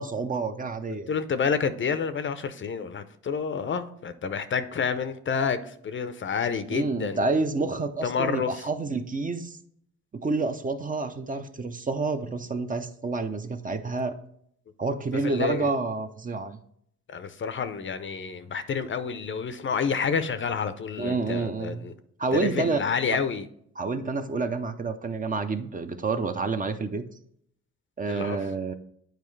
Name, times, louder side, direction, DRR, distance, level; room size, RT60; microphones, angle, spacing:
voice 1, 0.0-1.1 6.7-9.6 10.1-14.1 14.8-16.6 21.0-21.9 22.2-22.8 23.8-27.0 28.0-28.7, right 3 dB, 25° right, 7 dB, 0.6 m, -29 dB
voice 2, 1.1-7.2 8.0-8.7 15.2-15.7 17.1-21.9 22.3-23.5 28.1-28.4, left 6 dB, 40° left, 11 dB, 0.6 m, -29 dB
9.1 x 4.6 x 3.2 m, 0.68 s
cardioid pair, 90°, 30 cm